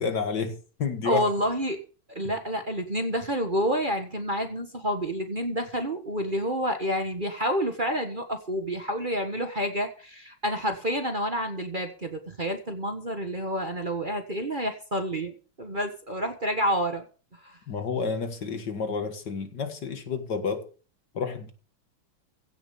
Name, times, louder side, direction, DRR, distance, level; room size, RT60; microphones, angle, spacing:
voice 1, 0.0-1.2 2.2-2.3 17.7-20.6 21.1-21.5, left 5 dB, 60° left, 2.3 m, -30 dB
voice 2, 1.0-1.8 2.1-17.0 17.4-17.6, equal, 25° right, 1.5 m, -29 dB
16.0 x 7.0 x 7.1 m
omnidirectional pair, 2.2 m